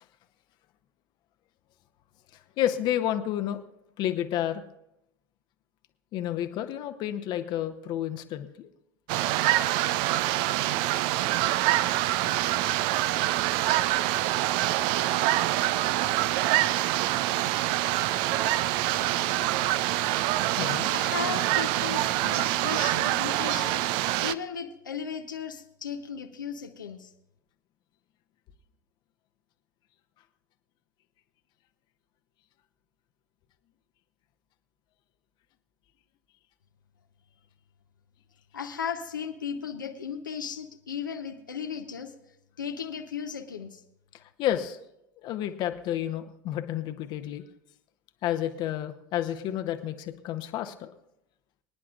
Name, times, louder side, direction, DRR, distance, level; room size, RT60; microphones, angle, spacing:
voice 1, 2.6-3.6 4.0-4.6 6.1-8.7 20.6-20.9 44.1-44.8 45.2-47.4 48.2-50.9, left 11 dB, 45° left, 7 dB, 0.9 m, -30 dB
sound 1, 9.1-24.3, right 15 dB, 50° right, 0.4 m, -25 dB
voice 2, 20.9-23.8 24.2-27.1 38.5-42.1 42.6-43.8, left 7 dB, 85° left, 4 dB, 0.8 m, -36 dB
25.5 x 9.7 x 2.5 m, 0.81 s
figure-of-eight pair, 75°, 10 cm